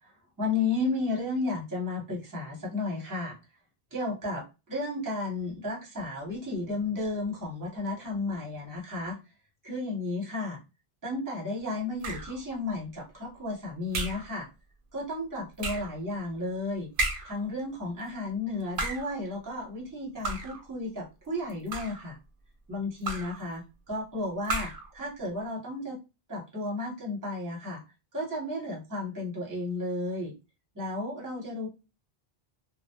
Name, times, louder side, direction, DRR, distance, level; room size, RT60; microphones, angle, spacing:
voice 1, 0.4-3.4 3.9-9.2 9.6-10.6 11.0-14.5 14.9-16.9 17.2-22.2 22.7-26.0 26.3-27.8 28.1-30.3 30.7-31.7, left 2 dB, 20° right, -2 dB, 0.9 m, -33 dB
sound 1, 12.0-12.4 13.9-14.3 15.6-16.0 17.0-17.4 18.6-19.2 20.2-20.7 21.5-22.1 23.0-23.4 24.4-24.9, right 2 dB, 65° right, 0.7 m, -33 dB
2.2 x 2.0 x 2.8 m, 0.28 s
omnidirectional pair, 1.0 m